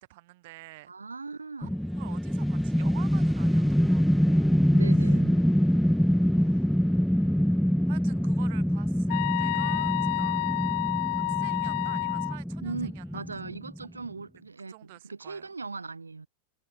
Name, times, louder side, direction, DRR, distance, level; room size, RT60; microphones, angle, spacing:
voice 1, 0.0-0.9 1.6-1.7 2.0-4.6 6.3-6.7 7.9-10.4 11.1-13.2 13.8-13.9 14.7-15.5, right 20 dB, 50° right, 7.5 m, -49 dB
voice 2, 0.9-1.7 4.7-5.4 12.6-16.3, right 4 dB, 80° right, 7.2 m, -39 dB
sound 1, 1.6-13.8, equal, ahead, 0.3 m, -25 dB
sound 2, 9.1-12.4, left 27 dB, 50° left, 0.8 m, -29 dB
figure-of-eight pair, 90°, 0 cm